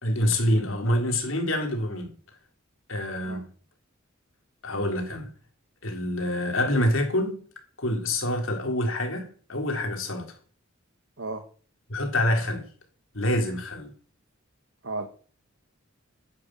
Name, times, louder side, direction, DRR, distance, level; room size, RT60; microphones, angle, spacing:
voice 1, 0.0-2.1 2.9-3.5 4.6-5.3 5.8-7.4 7.8-10.3 11.9-12.7 13.1-13.9, left 1 dB, 70° left, 3.6 m, -26 dB
voice 2, 3.2-3.4 11.2-11.4 14.8-15.1, right 2 dB, 65° right, 1.6 m, -33 dB
10.5 x 9.8 x 7.7 m
head